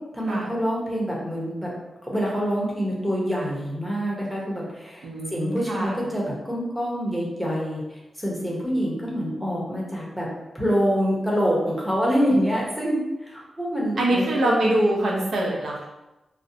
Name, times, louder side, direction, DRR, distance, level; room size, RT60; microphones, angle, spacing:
voice 1, 0.1-1.7 2.1-10.3 10.5-14.7, equal, 5° right, -4 dB, 0.8 m, -26 dB
voice 2, 5.0-6.0 14.0-15.9, right 1 dB, 75° right, -3 dB, 0.6 m, -24 dB
2.5 x 2.0 x 2.6 m, 1.0 s
wide cardioid pair, 90°, 0 cm